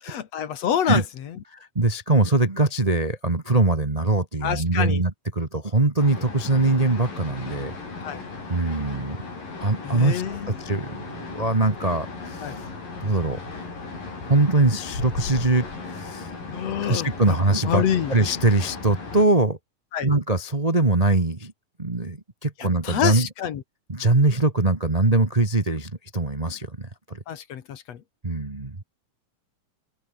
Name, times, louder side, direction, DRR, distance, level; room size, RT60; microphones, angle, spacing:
voice 1, 0.1-1.0 4.4-5.0 8.0-8.2 9.8-10.5 12.4-12.5 16.5-17.4 17.6-18.1 19.9-20.1 22.8-23.6 27.3-28.0, left 9 dB, 55° left, 2.3 m, -26 dB
voice 2, 1.5-7.7 8.5-9.2 9.6-12.5 13.0-13.4 14.3-16.3 16.8-19.6 20.0-21.5 21.8-23.3 23.9-27.2 28.2-28.8, right 2 dB, 70° right, 0.3 m, -22 dB
sound 1, 6.0-19.3, left 4 dB, 80° left, 9.4 m, -36 dB
omnidirectional pair, 4.0 m